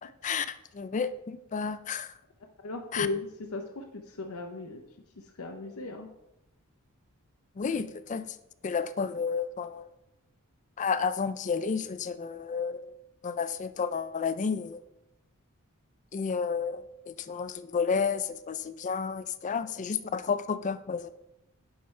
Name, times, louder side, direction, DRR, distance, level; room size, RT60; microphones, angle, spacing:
voice 1, 0.0-2.1 2.9-3.1 7.6-8.4 8.6-9.9 10.8-12.8 13.2-14.8 16.1-21.1, left 5 dB, 35° left, 13 dB, 0.4 m, -31 dB
voice 2, 2.6-4.8 5.1-6.1 8.1-8.2, left 3 dB, 70° left, 4 dB, 0.7 m, -36 dB
10.0 x 5.7 x 3.3 m, 0.85 s
head